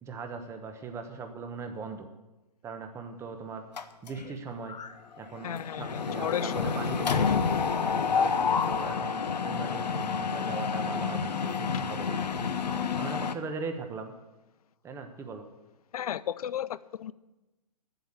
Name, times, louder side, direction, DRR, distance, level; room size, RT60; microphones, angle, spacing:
voice 1, 0.0-2.1 2.6-3.6 4.0-4.8 5.2-7.3 7.8-12.3 13.0-14.1 14.8-15.5, right 4 dB, 15° right, 6 dB, 1.0 m, -39 dB
Mechanisms, 3.8-4.4 4.7-4.9 5.2-13.3, left 6 dB, 85° left, 1.0 m, -29 dB
voice 2, 5.4-6.7 15.9-17.1, left 10 dB, 60° left, 18 dB, 0.5 m, -34 dB
9.5 x 8.0 x 8.7 m, 1.0 s
hypercardioid pair, 140°, 21 cm